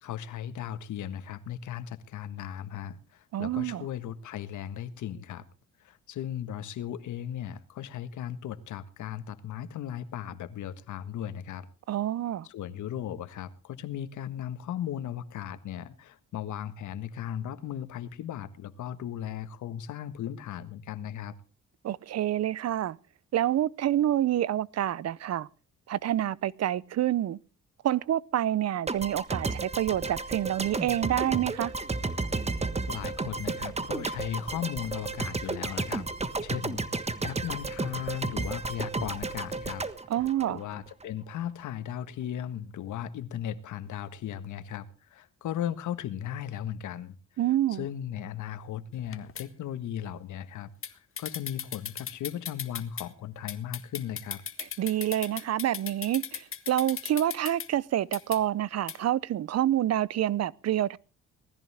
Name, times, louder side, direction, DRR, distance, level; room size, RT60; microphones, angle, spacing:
voice 1, 0.0-5.4 5.8-11.7 12.5-21.3 32.9-36.1 36.4-39.8 40.5-47.1 47.8-50.7 51.2-54.4, left 10 dB, 75° left, 1.6 m, -37 dB
voice 2, 3.3-3.9 11.9-12.5 21.8-23.0 23.3-25.5 25.9-27.4 27.8-31.7 40.1-40.6 47.4-47.9 54.6-61.0, right 12 dB, 60° right, 0.7 m, -27 dB
sound 1, 28.9-41.1, right 3 dB, 20° right, 1.4 m, -33 dB
sound 2, 49.0-49.4 50.8-50.9 51.2-53.1 53.5-57.7 58.1-58.4 58.9-59.0, left 8 dB, 45° left, 1.6 m, -37 dB
19.5 x 14.0 x 3.5 m
cardioid pair, 90°, 30 cm